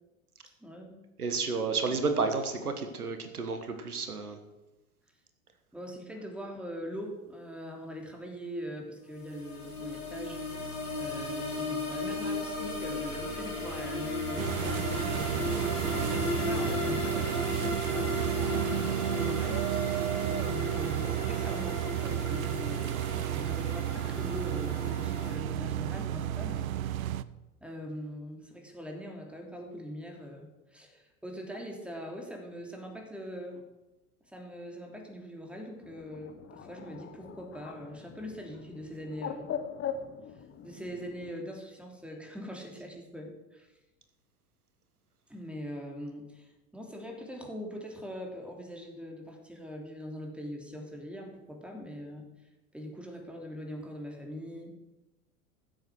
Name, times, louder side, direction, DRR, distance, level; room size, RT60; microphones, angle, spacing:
voice 1, 0.6-1.0 5.7-10.7 11.0-15.6 16.1-19.7 20.3-26.7 27.6-33.6 34.3-39.5 40.6-43.7 45.3-52.3 52.7-54.7, equal, 5° right, 2 dB, 3.0 m, -42 dB
voice 2, 1.2-4.4, right 4 dB, 85° right, 7 dB, 1.6 m, -31 dB
sound 1, 9.1-25.4, left 2 dB, 85° left, 4.0 m, -35 dB
sound 2, 14.4-27.2, right 12 dB, 70° right, 0.7 m, -32 dB
Bird, 35.8-41.3, left 8 dB, 30° left, 1.3 m, -41 dB
15.0 x 7.9 x 6.3 m, 1.0 s
figure-of-eight pair, 85°, 44 cm